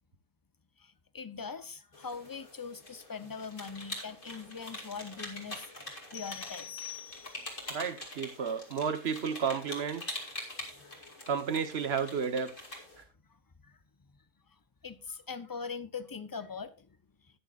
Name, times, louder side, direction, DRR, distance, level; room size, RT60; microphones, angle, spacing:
voice 1, 0.8-6.7 7.1-7.4 10.8-11.0 13.6-13.8 14.8-16.9, left 5 dB, 25° left, 0.5 m, -42 dB
sound 1, 1.9-13.0, left 1 dB, 45° left, 2.6 m, -44 dB
sound 2, 6.1-7.7, left 11 dB, 65° left, 0.8 m, -45 dB
voice 2, 7.7-10.0 11.3-12.5 13.0-13.1, right 6 dB, 55° right, 1.2 m, -32 dB
19.0 x 6.7 x 2.4 m
omnidirectional pair, 1.3 m